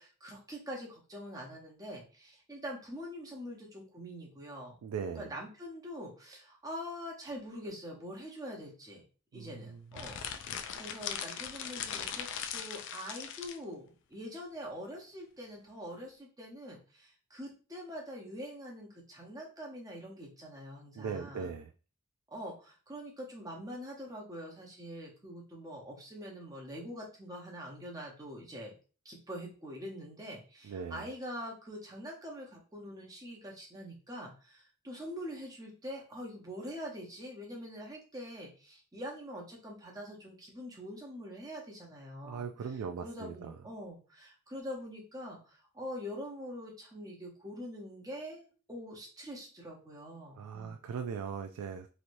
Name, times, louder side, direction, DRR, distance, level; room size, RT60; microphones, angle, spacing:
voice 1, 0.0-4.8 5.1-9.0 9.3-21.5 22.3-28.7 29.0-42.5 43.0-50.8, equal, 15° right, -2 dB, 0.8 m, -44 dB
voice 2, 4.8-5.3 9.3-10.0 21.0-21.7 30.6-31.0 42.2-43.6 50.4-51.9, right 6 dB, 85° right, 6 dB, 0.3 m, -39 dB
sound 1, 9.9-13.6, left 8 dB, 55° left, 0.3 m, -39 dB
3.1 x 2.7 x 2.6 m, 0.37 s
head